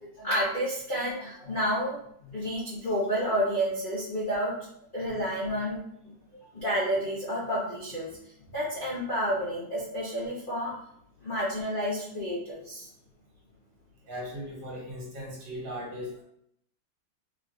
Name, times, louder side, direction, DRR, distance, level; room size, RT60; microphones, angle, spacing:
voice 1, 0.2-2.0 2.2-4.5 4.9-5.8 6.4-8.1 8.5-10.7 11.2-12.9, equal, 50° left, -9 dB, 0.6 m, -30 dB
voice 2, 14.1-16.2, equal, 70° right, -4 dB, 1.8 m, -38 dB
3.7 x 3.1 x 2.3 m, 0.71 s
omnidirectional pair, 2.1 m